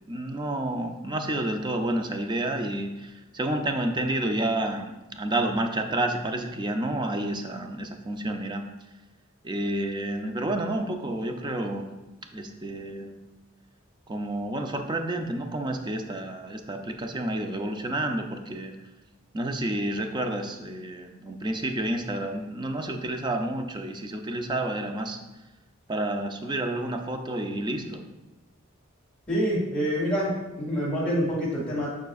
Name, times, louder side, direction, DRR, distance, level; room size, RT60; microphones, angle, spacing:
voice 1, 0.1-8.6 9.4-11.9 12.3-13.1 14.1-18.8 19.3-25.2 25.9-28.0, right 1 dB, 20° right, 5 dB, 0.5 m, -30 dB
voice 2, 29.3-31.9, equal, 5° left, -8 dB, 2.1 m, -26 dB
9.3 x 5.0 x 2.4 m, 1.1 s
head